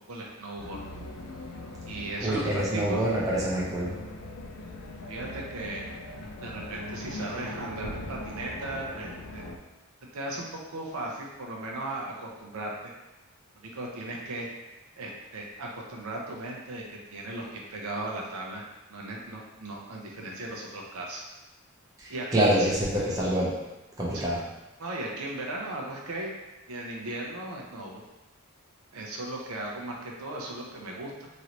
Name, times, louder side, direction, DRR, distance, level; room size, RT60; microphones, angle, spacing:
voice 1, 0.1-0.8 1.9-3.1 5.1-5.9 6.4-9.5 10.1-12.8 13.6-14.5 15.0-21.2 22.1-22.8 24.1-24.3 24.8-26.3 26.7-28.0 28.9-31.3, right 1 dB, 80° right, -2 dB, 0.6 m, -37 dB
sound 1, 0.6-9.6, left 2 dB, 85° left, 0.4 m, -40 dB
voice 2, 2.2-3.9 22.0-23.5 24.0-24.4, right 1 dB, 15° right, -6 dB, 0.6 m, -26 dB
3.1 x 2.6 x 2.9 m, 1.0 s
head